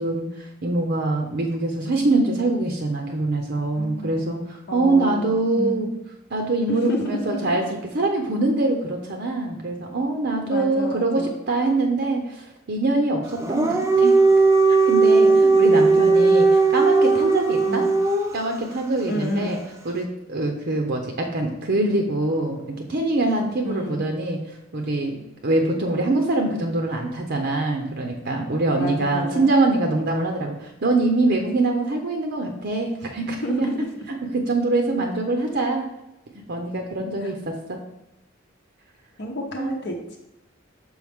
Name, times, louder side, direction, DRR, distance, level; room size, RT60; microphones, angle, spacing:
voice 1, 0.0-5.9 6.3-7.7 7.9-14.2 14.7-17.8 18.3-19.6 19.8-22.6 22.9-25.2 25.4-33.7 34.1-35.9 36.5-37.8 39.6-39.7, right 2 dB, 55° right, 2 dB, 0.7 m, -24 dB
voice 2, 3.8-4.2 4.7-5.9 6.7-7.6 10.5-11.3 15.7-16.3 17.7-17.9 19.1-19.5 23.6-24.0 28.8-29.5 33.4-33.9 39.2-40.2, left 1 dB, 55° left, -1 dB, 0.8 m, -30 dB
Dog, 13.3-18.5, right 3 dB, 15° right, 0.6 m, -17 dB
6.3 x 5.0 x 3.6 m, 0.90 s
head